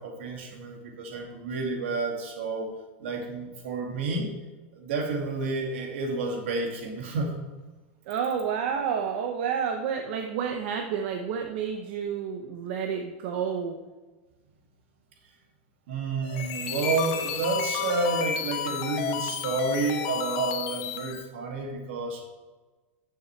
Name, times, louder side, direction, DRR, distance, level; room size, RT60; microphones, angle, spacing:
voice 1, 0.0-2.7 3.0-4.3 4.7-7.3 15.9-22.3, right 3 dB, 85° right, 1 dB, 2.4 m, -30 dB
voice 2, 8.1-13.8, right 7 dB, 65° right, 3 dB, 0.9 m, -30 dB
sound 1, 16.2-21.3, left 8 dB, 55° left, 1.1 m, -32 dB
13.0 x 7.0 x 3.3 m, 1.3 s
supercardioid pair, 140°, 6 cm